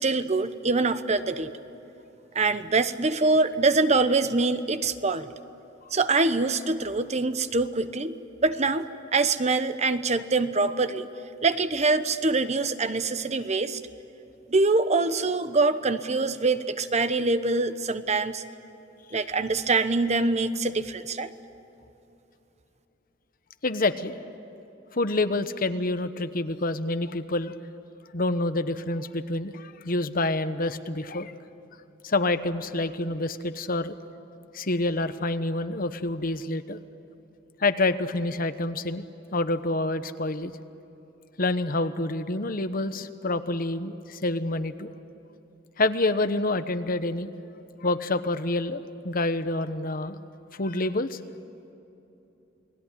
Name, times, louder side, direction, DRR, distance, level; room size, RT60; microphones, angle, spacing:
voice 1, 0.0-1.5 2.3-5.3 5.9-8.2 8.4-11.1 11.4-13.8 14.5-18.4 19.1-21.3, right 3 dB, 35° right, 11 dB, 1.0 m, -24 dB
voice 2, 23.6-24.2 24.9-27.5 28.1-31.3 32.0-33.9 34.5-36.8 37.6-39.0 39.3-40.5 41.4-44.9 45.8-47.3 47.8-50.2 50.5-51.2, left 2 dB, 50° left, 11 dB, 1.1 m, -27 dB
29.5 x 20.0 x 10.0 m, 2.9 s
head